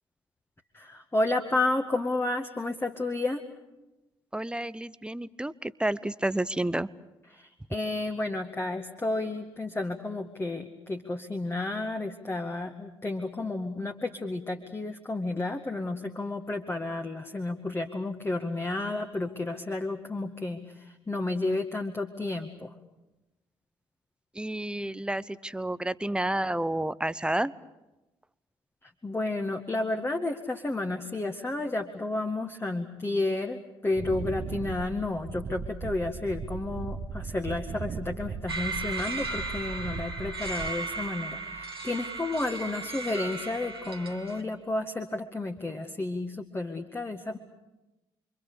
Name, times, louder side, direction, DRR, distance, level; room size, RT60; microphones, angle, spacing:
voice 1, 0.7-3.4 7.3-22.7 28.8-47.4, left 2 dB, 20° left, 5 dB, 2.1 m, -31 dB
voice 2, 4.3-6.9 24.3-27.5, right 1 dB, 5° right, 17 dB, 1.0 m, -30 dB
Wind, 33.9-41.1, right 5 dB, 40° right, 1.2 m, -38 dB
sound 1, 38.5-44.4, right 3 dB, 85° right, 2.0 m, -36 dB
29.0 x 24.5 x 6.9 m, 1.0 s
figure-of-eight pair, 45°, 13 cm